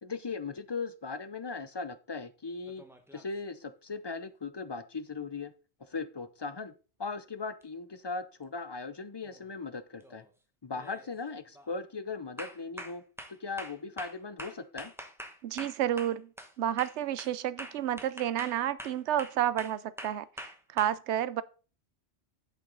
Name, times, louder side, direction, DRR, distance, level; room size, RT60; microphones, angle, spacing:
voice 1, 0.0-2.8 3.1-5.5 5.8-6.7 7.0-10.2 10.6-13.0 13.3-14.9, left 4 dB, 35° left, 0.4 m, -38 dB
sound 1, 2.7-3.4 7.6-7.7 9.2-9.5 10.0-10.3 10.8-11.1 11.5-11.8 12.4-16.5 16.8-20.9, equal, ahead, 0.9 m, -45 dB
voice 2, 15.4-16.3 16.6-20.3 20.7-21.4, right 11 dB, 80° right, 0.9 m, -30 dB
8.3 x 6.9 x 3.9 m
omnidirectional pair, 1.2 m